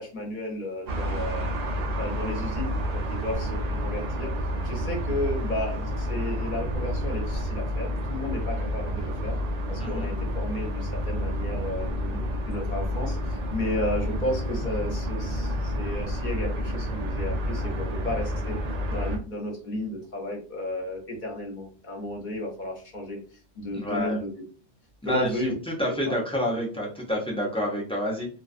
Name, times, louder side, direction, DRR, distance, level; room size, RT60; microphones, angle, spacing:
voice 1, 0.0-1.5 2.0-4.3 4.6-9.3 9.7-18.5 18.9-23.2 23.5-24.3 25.0-25.5 26.1-26.2, left 1 dB, 45° left, 0 dB, 0.8 m, -33 dB
sound 1, 0.9-19.2, equal, 85° right, 0.3 m, -29 dB
voice 2, 23.7-24.2 25.0-25.3 25.8-28.3, equal, 10° left, -3 dB, 0.4 m, -28 dB
2.3 x 2.3 x 2.5 m, 0.38 s
omnidirectional pair, 1.2 m